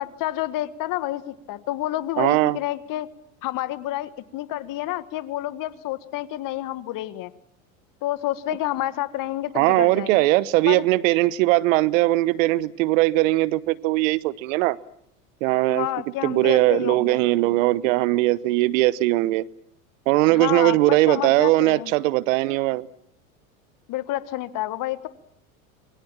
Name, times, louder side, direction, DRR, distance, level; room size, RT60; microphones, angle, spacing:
voice 1, 0.0-3.1 3.4-7.3 8.0-10.3 10.7-10.8 15.7-17.2 20.3-21.9 23.9-25.1, left 15 dB, 50° left, 14 dB, 1.7 m, -29 dB
voice 2, 2.2-2.6 9.5-14.8 15.4-15.9 16.2-19.5 20.1-22.9, right 18 dB, 70° right, 20 dB, 1.0 m, -20 dB
26.5 x 22.5 x 7.5 m, 0.75 s
hypercardioid pair, 95°, 41 cm